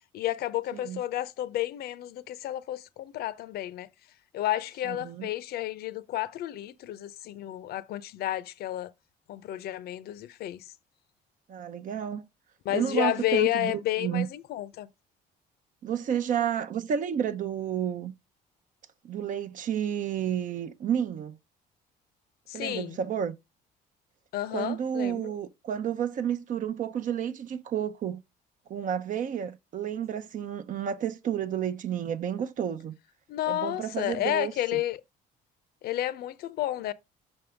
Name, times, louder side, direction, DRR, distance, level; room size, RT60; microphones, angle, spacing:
voice 1, 0.1-3.9 4.3-8.9 9.3-10.7 12.6-14.9 22.5-23.0 24.3-25.3 33.3-35.0 35.8-36.9, left 14 dB, 70° left, 0.6 m, -31 dB
voice 2, 4.8-5.3 11.5-12.2 12.7-13.7 14.0-14.3 15.8-18.1 19.0-21.4 22.5-23.3 24.5-28.2 28.7-32.9 33.5-34.8, right 9 dB, 50° right, 0.6 m, -31 dB
5.7 x 5.3 x 3.4 m
cardioid pair, 110°, 17 cm